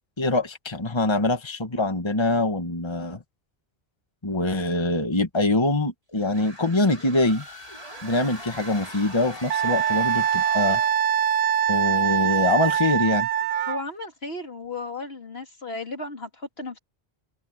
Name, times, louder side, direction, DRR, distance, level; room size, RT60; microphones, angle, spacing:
voice 1, 0.2-3.2 4.2-7.4 8.0-10.8 11.7-13.3, left 2 dB, 25° left, 1.6 m, -24 dB
sound 1, 6.2-11.1, equal, 35° right, 4.7 m, -41 dB
Wind instrument woodwind instrument, 9.5-13.8, right 9 dB, 65° right, 0.8 m, -23 dB
voice 2, 13.7-16.8, left 3 dB, 70° left, 3.3 m, -35 dB
omnidirectional pair, 1.1 m